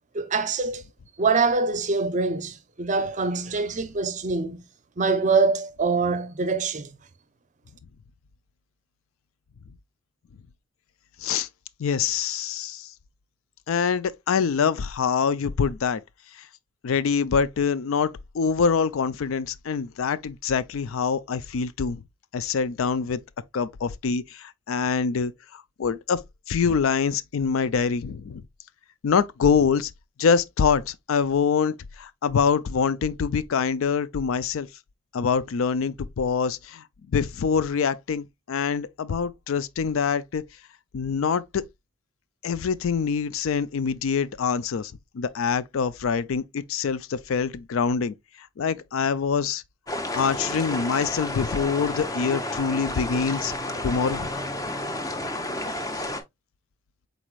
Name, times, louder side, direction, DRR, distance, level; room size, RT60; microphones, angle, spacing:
voice 1, 0.1-0.8 1.2-4.6 5.0-6.9, right 4 dB, 35° right, 0.6 m, -24 dB
voice 2, 11.8-12.9 13.7-16.0 16.8-22.0 22.3-23.2 23.5-26.2 26.5-28.4 29.0-29.9 30.2-34.7 35.1-40.4 40.9-41.6 42.4-49.6 50.1-53.5 53.8-54.3, left 6 dB, 75° left, 0.4 m, -25 dB
sound 1, 49.9-56.2, left 1 dB, 15° left, 0.6 m, -31 dB
4.6 x 4.1 x 2.4 m
head